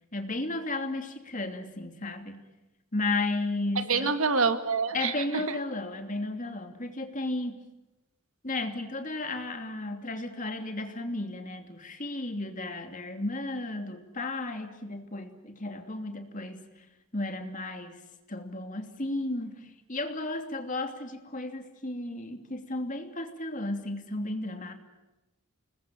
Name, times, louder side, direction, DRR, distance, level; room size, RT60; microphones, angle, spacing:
voice 1, 0.1-2.5 2.9-4.2 4.9-7.6 8.4-16.7 17.1-18.0 18.3-24.7, left 2 dB, 35° left, 6 dB, 2.8 m, -34 dB
voice 2, 3.8-5.6, right 4 dB, 70° right, 10 dB, 1.9 m, -27 dB
29.0 x 20.5 x 7.5 m, 1.0 s
head